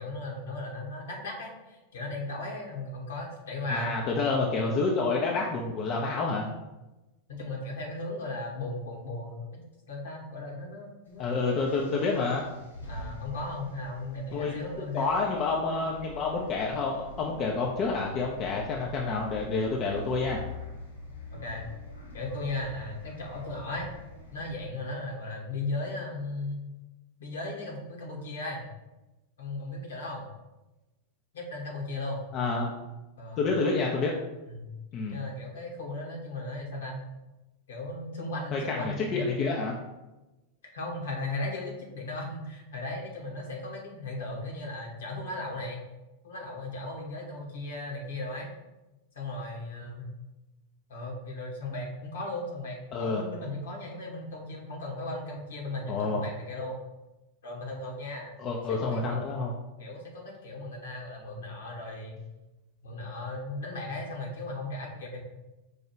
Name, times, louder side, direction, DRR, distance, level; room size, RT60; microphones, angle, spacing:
voice 1, 0.0-4.0 7.3-9.5 9.9-11.2 12.9-15.2 21.3-21.7 22.1-23.9 24.3-26.6 27.2-28.7 29.4-30.2 31.3-32.3 33.2-33.5 34.5-34.7 35.1-37.1 37.7-39.6 40.7-45.9 46.2-48.5 49.1-50.1 50.9-56.8 57.4-58.4 58.7-59.2 59.8-62.2 62.8-65.2, left 2 dB, 60° left, -1 dB, 1.2 m, -36 dB
voice 2, 3.7-6.5 11.2-12.5 14.3-14.5 14.9-20.4 32.3-32.7 33.4-34.1 34.9-35.2 38.5-39.8 52.9-53.2 55.8-56.2 58.4-59.5, left 3 dB, 35° left, -1 dB, 0.5 m, -28 dB
sound 1, 11.1-24.6, left 2 dB, 80° left, 1.0 m, -46 dB
4.7 x 2.3 x 4.6 m, 1.0 s
figure-of-eight pair, 90°, 0 cm